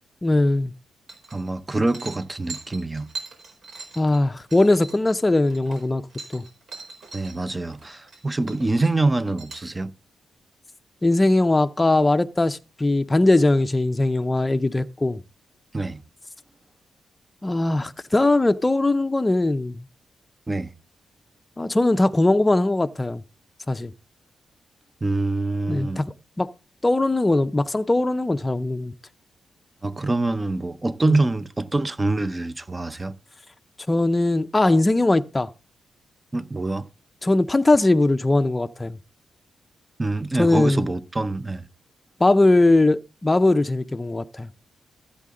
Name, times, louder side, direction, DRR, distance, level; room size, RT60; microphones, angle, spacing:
voice 1, 0.2-0.7 4.0-6.0 6.3-6.4 11.0-15.2 17.4-19.8 21.6-23.2 23.7-23.9 25.7-26.0 26.4-26.5 26.8-28.9 31.0-31.2 33.9-35.5 37.2-39.0 40.4-40.9 42.2-44.5, left 2 dB, 20° left, 0.6 m, -20 dB
sound 1, 1.1-1.6 1.9-7.3 7.7-8.2 8.5-9.7, right 4 dB, 65° right, 4.5 m, -41 dB
voice 2, 1.3-3.1 7.1-9.9 15.7-16.0 20.5-20.7 25.0-26.0 29.8-33.1 36.3-36.9 40.0-41.6, right 2 dB, 20° right, 0.8 m, -25 dB
13.5 x 8.4 x 3.7 m
cardioid pair, 95°, 0 cm